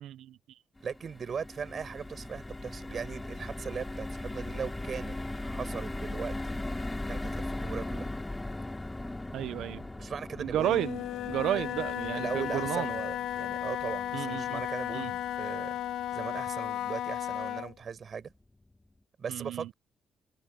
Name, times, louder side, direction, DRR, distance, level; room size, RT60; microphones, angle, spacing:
voice 1, 0.0-0.6 9.3-9.8 10.4-12.9 14.1-14.6 14.9-15.1 19.3-19.7, right 12 dB, 80° right, 0.4 m, -32 dB
sound 1, 0.8-17.1 17.5-17.6 17.9-18.1, left 2 dB, 15° left, 3.2 m, -39 dB
voice 2, 0.8-6.6 7.1-8.1 10.0-10.9 11.5-11.7 12.1-15.8 16.1-18.3 19.2-19.7, right 6 dB, 50° right, 5.3 m, -39 dB
Wind instrument woodwind instrument, 10.5-17.7, left 12 dB, 80° left, 1.2 m, -34 dB
cardioid pair, 90°, 0 cm